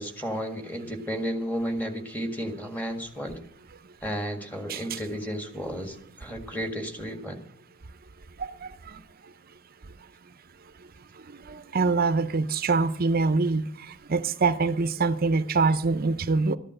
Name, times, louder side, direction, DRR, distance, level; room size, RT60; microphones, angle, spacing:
voice 1, 0.0-3.4 4.0-7.4, equal, 10° left, 5 dB, 1.8 m, -33 dB
voice 2, 8.4-9.0 11.5-13.6 14.1-16.6, right 4 dB, 45° right, 13 dB, 0.6 m, -24 dB
13.5 x 11.0 x 7.7 m, 0.69 s
head